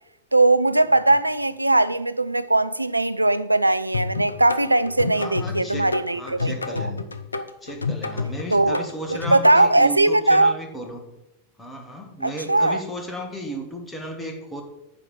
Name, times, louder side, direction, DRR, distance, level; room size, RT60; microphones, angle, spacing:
voice 1, 0.3-6.9 8.5-8.8 9.3-10.5 12.2-12.8, right 2 dB, 85° right, 0.3 m, -19 dB
sound 1, 3.9-9.6, left 4 dB, 80° left, 0.5 m, -29 dB
voice 2, 5.1-7.1 7.6-11.1 11.6-14.6, equal, 10° left, 1.7 m, -34 dB
9.7 x 3.5 x 7.0 m
figure-of-eight pair, 90°, 0 cm